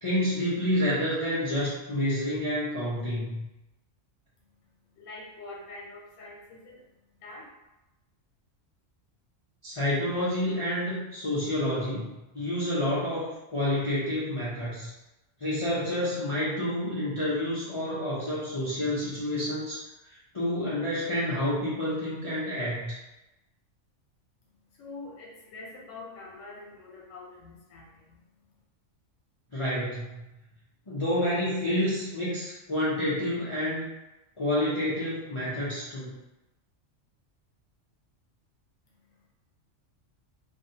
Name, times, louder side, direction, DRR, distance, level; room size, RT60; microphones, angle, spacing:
voice 1, 0.0-3.4 9.6-14.9 15.4-19.8 20.1-23.0 29.5-30.2 30.9-33.9 34.4-36.1, left 1 dB, 45° left, -10 dB, 0.4 m, -29 dB
voice 2, 4.6-7.5 24.5-28.5 38.9-39.3, left 2 dB, 90° left, -3 dB, 1.0 m, -46 dB
2.4 x 2.2 x 2.7 m, 0.98 s
omnidirectional pair, 1.3 m